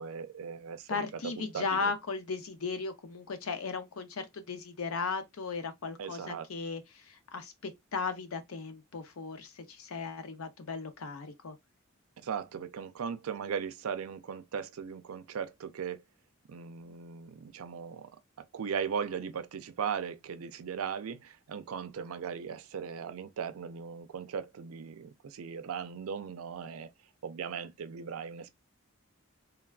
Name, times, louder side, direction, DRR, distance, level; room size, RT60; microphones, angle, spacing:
voice 1, 0.0-1.0 1.4-1.9 6.0-6.5 12.2-16.0 16.5-18.1 18.5-26.9 27.2-28.6, right 7 dB, 85° right, 0.4 m, -38 dB
voice 2, 0.9-11.6, left 4 dB, 80° left, 0.6 m, -36 dB
3.3 x 2.2 x 2.3 m
head